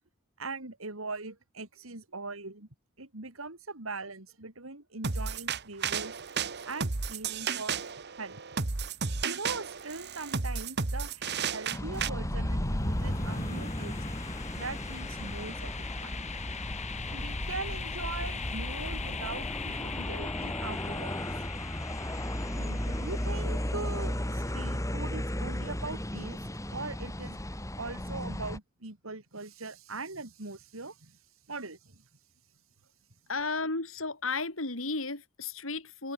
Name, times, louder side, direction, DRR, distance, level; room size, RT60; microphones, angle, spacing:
voice 1, 0.4-2.7 3.0-6.1 6.6-7.8 8.1-8.4 9.2-14.0 14.6-16.3 17.1-21.3 22.5-26.4 26.7-27.4 27.8-31.2 31.5-32.0, right 3 dB, 85° right, 3.6 m, -41 dB
sound 1, 5.0-12.1, right 5 dB, 55° right, 1.4 m, -33 dB
sound 2, 11.7-28.6, left 1 dB, 15° left, 3.0 m, -36 dB
sound 3, 11.9-23.7, left 2 dB, 35° left, 2.6 m, -37 dB
voice 2, 33.3-36.1, left 3 dB, 80° left, 4.2 m, -33 dB
open air
head